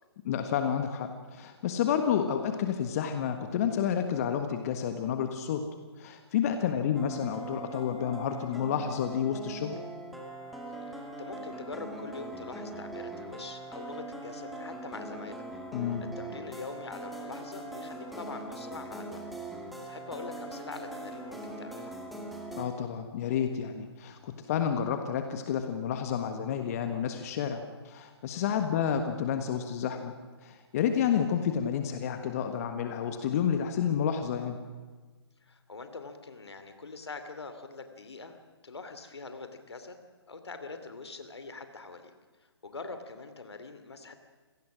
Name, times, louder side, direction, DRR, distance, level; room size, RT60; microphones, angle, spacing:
voice 1, 0.2-5.6 6.0-9.8 15.7-16.0 22.6-30.1 30.4-34.6, left 8 dB, 35° left, 7 dB, 1.5 m, -30 dB
sound 1, 7.0-22.7, right 2 dB, ahead, 2.0 m, -41 dB
voice 2, 10.9-15.4 15.7-15.9 16.2-19.2 19.9-22.0 28.4-28.6 35.4-39.9 40.2-42.1 42.4-44.1, left 3 dB, 70° left, 8 dB, 2.8 m, -44 dB
26.0 x 18.0 x 6.3 m, 1.4 s
figure-of-eight pair, 135°, 14 cm